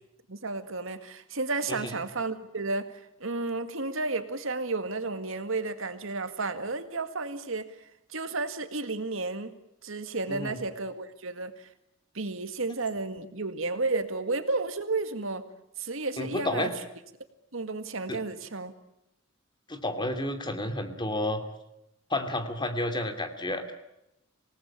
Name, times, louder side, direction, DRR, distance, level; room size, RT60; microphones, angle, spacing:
voice 1, 0.3-2.9 3.2-7.8 8.1-9.5 9.8-11.7 12.1-15.4 15.8-16.7 17.5-18.7, right 3 dB, 75° right, 9 dB, 2.0 m, -32 dB
voice 2, 16.2-16.7 18.1-18.2 19.7-21.4 22.1-23.7, left 1 dB, 20° left, 7 dB, 2.6 m, -31 dB
26.5 x 19.0 x 8.7 m, 0.84 s
head